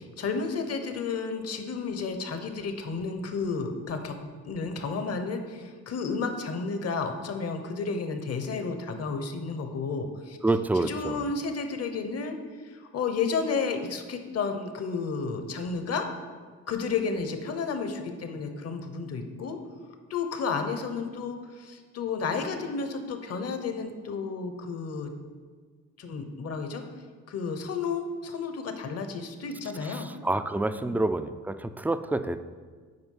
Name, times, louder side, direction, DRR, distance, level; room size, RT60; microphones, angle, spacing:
voice 1, 0.0-4.2 4.4-10.4 10.7-12.4 12.6-16.1 16.7-19.6 20.1-25.1 26.0-26.8 27.3-30.1 30.8-31.0, left 4 dB, 55° left, 7 dB, 1.0 m, -32 dB
voice 2, 10.4-11.2 29.8-32.4, right 2 dB, 5° right, 10 dB, 0.3 m, -28 dB
7.9 x 5.1 x 5.6 m, 1.5 s
cardioid pair, 90°, 30 cm